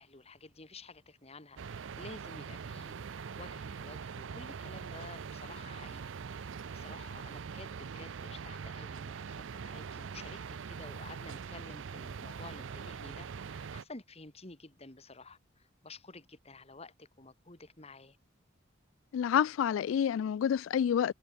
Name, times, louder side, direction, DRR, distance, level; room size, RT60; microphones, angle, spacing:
voice 1, 0.0-18.2, left 3 dB, 30° left, 2.7 m, -52 dB
sound 1, 1.6-13.8, right 6 dB, 75° right, 0.5 m, -43 dB
voice 2, 19.1-21.1, left 8 dB, 85° left, 0.3 m, -28 dB
head